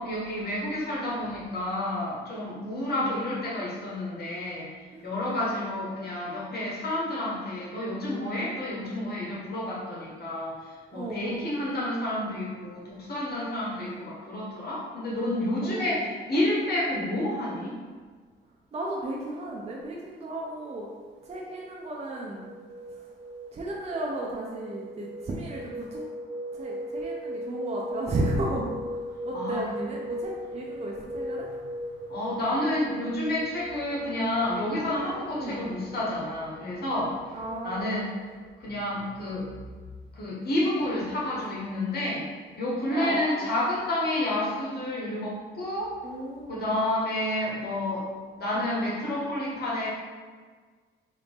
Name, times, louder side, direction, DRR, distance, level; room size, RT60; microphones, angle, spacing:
voice 1, 0.0-4.7 5.0-17.8 29.3-29.6 32.1-37.2 37.6-38.1 38.6-39.5 40.1-42.2 42.6-45.9 46.5-48.1 48.4-49.9, left 1 dB, 55° left, -5 dB, 1.2 m, -30 dB
voice 2, 2.8-3.2 4.9-5.7 10.9-11.4 13.8-14.0 15.5-15.9 18.7-20.9 21.2-22.5 22.9-23.1 23.5-26.1 26.5-31.5 35.3-35.6 37.3-38.1 42.8-43.5 46.0-46.7, right 1 dB, 30° right, -3 dB, 0.6 m, -34 dB
sound 1, 20.7-38.5, right 1 dB, 70° right, 1.3 m, -39 dB
3.9 x 2.6 x 3.5 m, 1.5 s
cardioid pair, 90°, 20 cm